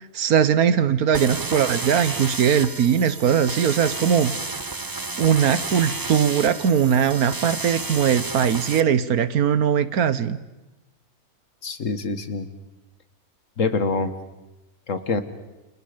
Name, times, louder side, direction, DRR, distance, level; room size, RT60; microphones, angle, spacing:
voice 1, 0.1-4.4 5.2-10.4, right 8 dB, 80° right, 15 dB, 1.5 m, -20 dB
sound 1, 1.1-8.8, right 3 dB, 20° right, 0.6 m, -31 dB
voice 2, 11.6-12.5 13.6-14.1 14.9-15.2, left 4 dB, 60° left, 10 dB, 1.9 m, -25 dB
30.0 x 27.5 x 5.2 m, 1.0 s
omnidirectional pair, 1.6 m